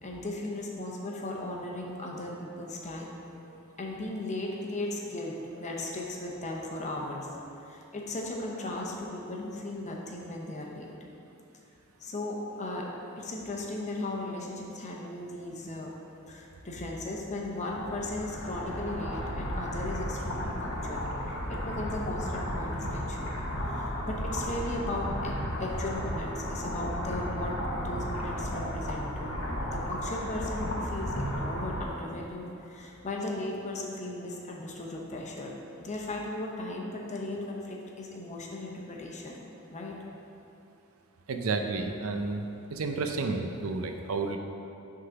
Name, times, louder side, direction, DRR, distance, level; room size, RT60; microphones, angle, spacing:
voice 1, 0.0-7.3 7.6-10.9 12.0-12.9 13.2-23.3 23.6-29.1 29.7-39.4 39.7-39.9, left 2 dB, 35° left, -1 dB, 0.8 m, -37 dB
sound 1, 17.7-31.9, equal, 75° left, 1.2 m, -34 dB
voice 2, 41.3-44.4, right 3 dB, 80° right, 5 dB, 0.5 m, -31 dB
6.3 x 3.8 x 5.7 m, 2.7 s
head